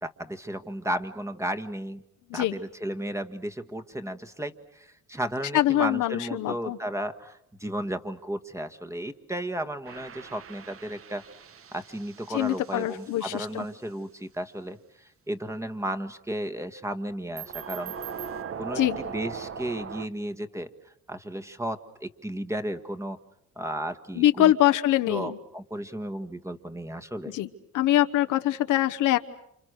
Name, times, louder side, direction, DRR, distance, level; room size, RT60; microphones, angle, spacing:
voice 1, 0.0-2.0 2.3-11.2 11.7-17.9 18.6-18.8 19.1-20.7 21.1-23.2 23.6-24.5 25.1-27.4, right 1 dB, 10° right, 6 dB, 1.6 m, -34 dB
voice 2, 5.5-6.8 12.3-13.6 18.7-19.0 24.2-25.4 27.3-27.5 27.7-29.2, left 13 dB, 85° left, 8 dB, 1.1 m, -23 dB
sound 1, 9.8-13.4 17.4-20.1, right 7 dB, 45° right, 1.2 m, -39 dB
29.5 x 27.5 x 6.5 m, 0.76 s
cardioid pair, 90°, 30 cm